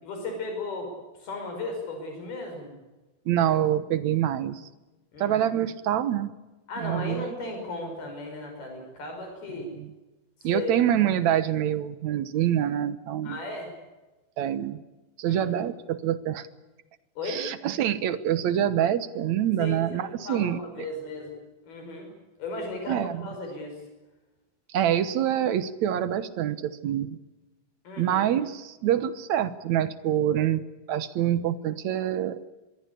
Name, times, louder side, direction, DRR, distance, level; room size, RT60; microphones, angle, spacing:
voice 1, 0.0-0.9 1.2-2.7 5.1-5.4 6.7-9.7 10.4-10.8 13.2-13.7 15.3-15.5 17.2-17.5 19.6-21.4 21.7-22.1 22.4-23.8 27.9-28.2, left 2 dB, 80° left, 3 dB, 7.4 m, -35 dB
voice 2, 3.3-4.6 5.2-6.3 6.8-7.3 9.6-9.9 10.4-13.4 14.4-14.8 15.2-16.5 17.2-20.9 22.9-23.2 24.7-27.2 28.0-30.6 30.9-32.5, right 10 dB, 65° right, 13 dB, 2.0 m, -26 dB
25.5 x 22.0 x 8.4 m, 1.1 s
omnidirectional pair, 4.3 m